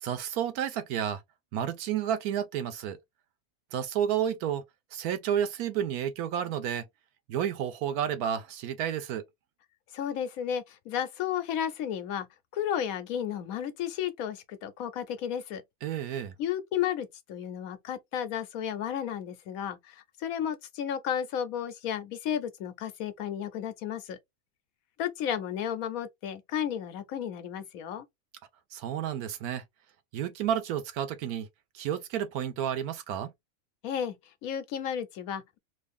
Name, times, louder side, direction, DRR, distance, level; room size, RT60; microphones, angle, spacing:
voice 1, 0.0-1.2 1.5-3.0 3.7-4.6 4.9-6.8 7.3-9.2 15.8-16.3 28.7-29.6 30.1-31.5 31.7-33.3, right 9 dB, 90° right, 1.2 m, -31 dB
voice 2, 9.9-12.3 12.5-15.6 16.4-24.2 25.0-28.0 33.8-34.1 34.4-35.6, left 9 dB, 75° left, 1.1 m, -33 dB
3.0 x 2.6 x 3.4 m
omnidirectional pair, 1.5 m